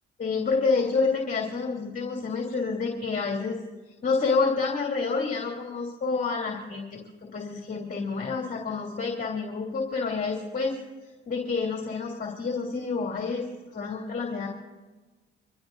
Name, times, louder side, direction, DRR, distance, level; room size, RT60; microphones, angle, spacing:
voice 1, 0.2-3.6 3.9-10.8 11.3-14.5, left 4 dB, 45° left, 0 dB, 3.1 m, -28 dB
25.5 x 18.0 x 2.7 m, 1.2 s
cardioid pair, 90°, 20 cm